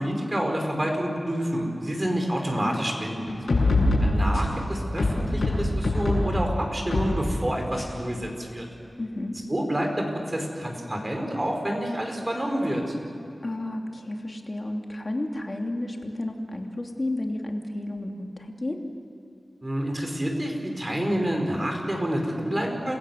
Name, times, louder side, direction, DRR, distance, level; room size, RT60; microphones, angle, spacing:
voice 1, 0.0-3.4 4.0-8.7 9.5-12.9 19.6-23.0, equal, 30° right, 2 dB, 5.2 m, -28 dB
sound 1, 3.3-4.6 5.0-6.3 6.9-7.1 7.8-7.9, left 2 dB, 90° left, 7.4 m, -23 dB
voice 2, 3.5-4.0 9.0-9.4 13.4-18.8, left 1 dB, 40° left, 2 dB, 3.0 m, -32 dB
29.0 x 16.5 x 7.7 m, 2.8 s
wide cardioid pair, 50°, 0 cm